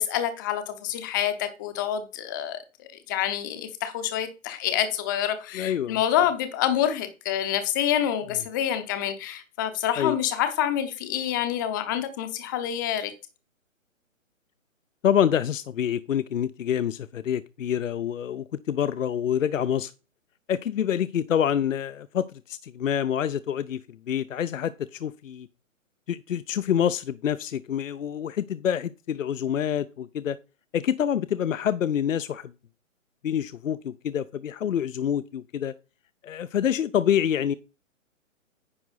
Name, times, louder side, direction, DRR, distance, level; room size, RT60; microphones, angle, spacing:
voice 1, 0.0-13.1, left 10 dB, 15° left, 0.7 m, -27 dB
voice 2, 5.5-6.0 10.0-10.2 15.0-19.9 20.5-23.8 24.1-25.5 26.1-30.4 30.7-32.5 33.2-35.7 36.2-37.5, left 9 dB, 70° left, 0.6 m, -26 dB
9.8 x 5.8 x 4.1 m
figure-of-eight pair, 145°, 40 cm